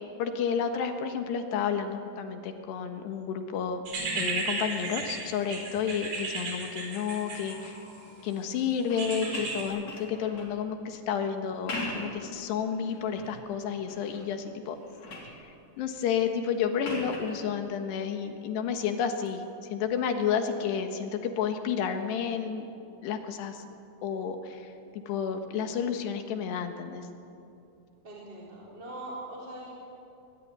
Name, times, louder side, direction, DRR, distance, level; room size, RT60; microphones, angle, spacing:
voice 1, 0.2-3.8 4.2-7.8 8.2-14.8 15.2-15.4 15.8-22.7 23.0-23.6 24.0-27.1, left 7 dB, 70° left, 6 dB, 3.3 m, -31 dB
sound 1, 3.9-8.1 9.0-9.6, right 3 dB, 65° right, 6.4 m, -34 dB
sound 2, 8.8-10.6 11.5-12.2 12.7-13.3 13.9-14.3 14.6-15.4 16.8-17.4 19.1-19.3, left 2 dB, 40° left, 4.8 m, -39 dB
voice 2, 28.0-29.7, right 1 dB, 25° right, -4 dB, 3.9 m, -41 dB
22.5 x 19.5 x 9.4 m, 2.7 s
omnidirectional pair, 5.3 m